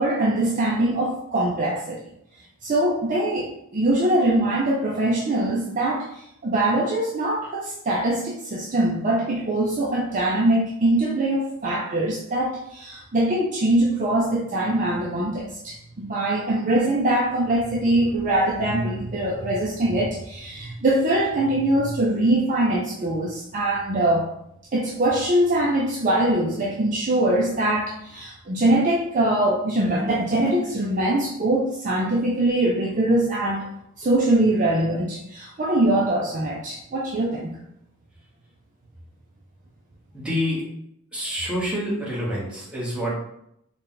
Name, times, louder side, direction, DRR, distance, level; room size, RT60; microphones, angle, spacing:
voice 1, 0.0-2.0 2.6-24.3 24.7-33.6 34.0-37.5, right 1 dB, 35° right, -3 dB, 0.4 m, -23 dB
voice 2, 40.1-40.6 41.1-43.1, equal, 5° right, -7 dB, 1.0 m, -27 dB
3.8 x 2.2 x 3.7 m, 0.76 s
head